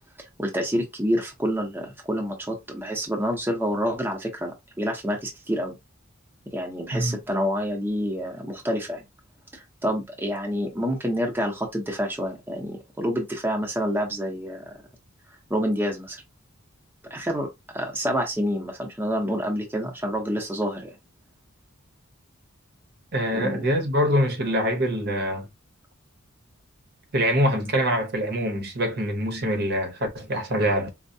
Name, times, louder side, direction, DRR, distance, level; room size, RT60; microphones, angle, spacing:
voice 1, 0.4-4.5 4.8-5.8 6.5-9.0 9.5-14.7 15.5-16.2 17.1-17.5 17.7-20.9 23.3-23.6, equal, 10° right, 0.7 m, -27 dB
voice 2, 23.1-25.5 27.1-30.9, equal, 50° right, 0.8 m, -24 dB
4.4 x 2.1 x 2.6 m
head